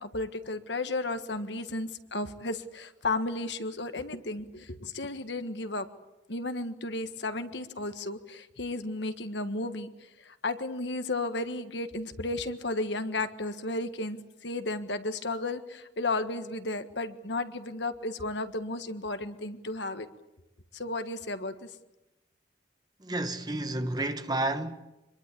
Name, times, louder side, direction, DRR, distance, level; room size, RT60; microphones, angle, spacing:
voice 1, 0.0-5.9 6.3-20.1 20.7-21.7, left 2 dB, 70° left, 1.7 m, -33 dB
voice 2, 23.0-24.8, right 2 dB, 20° right, 1.4 m, -31 dB
25.5 x 22.0 x 8.5 m
head